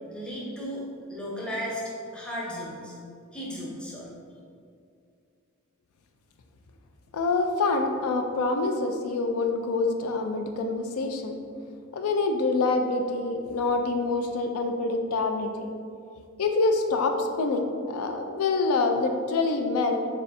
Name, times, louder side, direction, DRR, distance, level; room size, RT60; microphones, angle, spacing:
voice 1, 0.1-0.8 1.1-1.8 2.1-2.9 3.3-4.1, equal, 5° left, -6 dB, 0.6 m, -35 dB
voice 2, 7.1-11.3 11.9-15.5 16.4-20.0, left 3 dB, 80° left, 5 dB, 0.4 m, -26 dB
6.6 x 2.4 x 2.7 m, 2.3 s
head